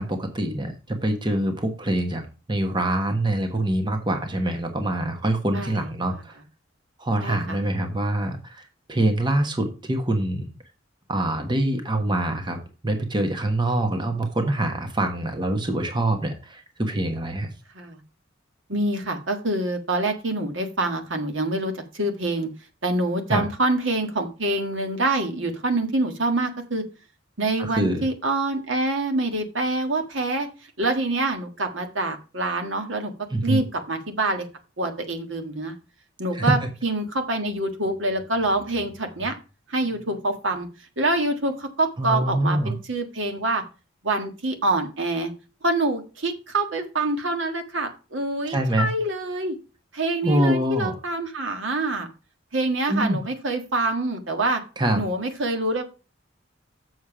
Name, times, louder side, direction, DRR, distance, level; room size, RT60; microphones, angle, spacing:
voice 1, 0.0-2.2 2.5-6.4 7.0-10.5 11.1-17.5 23.3-23.4 27.6-28.1 33.3-33.6 36.3-36.7 42.0-42.8 48.5-48.9 50.2-50.9 52.9-53.2 54.8-55.0, right 1 dB, 25° right, 5 dB, 1.2 m, -25 dB
voice 2, 7.2-7.6 17.7-18.0 18.7-22.5 22.8-26.8 27.4-30.5 30.8-33.1 33.4-34.4 34.8-35.7 36.2-39.3 39.7-40.7 41.0-43.6 44.0-45.3 45.6-49.6 49.9-52.1 52.5-54.6 54.9-55.8, right 2 dB, 70° right, 5 dB, 1.6 m, -26 dB
7.2 x 6.4 x 4.9 m, 0.33 s
head